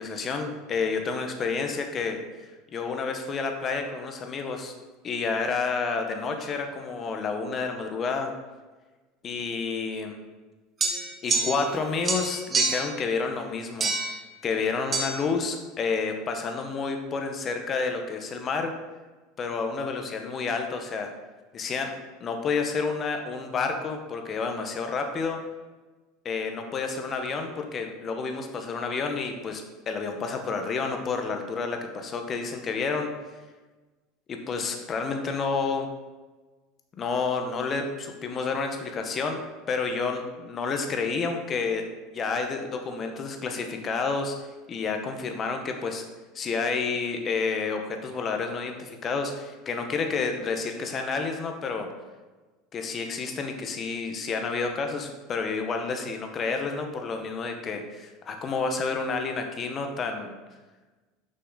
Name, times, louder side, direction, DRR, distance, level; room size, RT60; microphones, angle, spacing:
voice 1, 0.0-2.2 2.7-4.7 5.0-8.3 9.2-10.2 11.2-14.1 14.4-18.7 19.4-21.1 21.5-21.9 22.2-25.4 26.2-33.1 34.3-35.9 37.0-39.4 39.7-41.8 42.1-44.3 44.7-46.0 46.3-51.9 52.7-60.3, left 4 dB, 30° left, 5 dB, 0.9 m, -30 dB
sound 1, 10.8-11.8 12.0-12.9 13.8-14.2 14.9-15.1, right 3 dB, 25° right, 0.9 m, -26 dB
6.7 x 5.6 x 4.0 m, 1.2 s
supercardioid pair, 140°, 0 cm